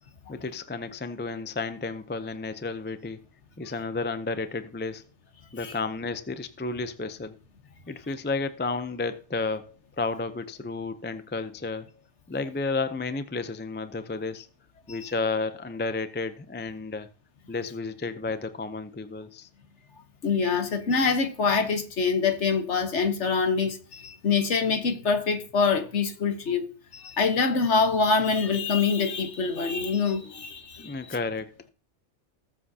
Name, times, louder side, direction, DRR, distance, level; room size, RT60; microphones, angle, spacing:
voice 1, 0.3-3.2 3.6-5.0 5.5-7.4 7.9-11.9 12.3-14.5 14.9-17.1 17.5-19.5 30.8-31.7, left 3 dB, 20° left, 0.3 m, -32 dB
voice 2, 20.2-30.9, left 5 dB, 85° left, 1.5 m, -25 dB
19.5 x 7.4 x 2.8 m
omnidirectional pair, 1.2 m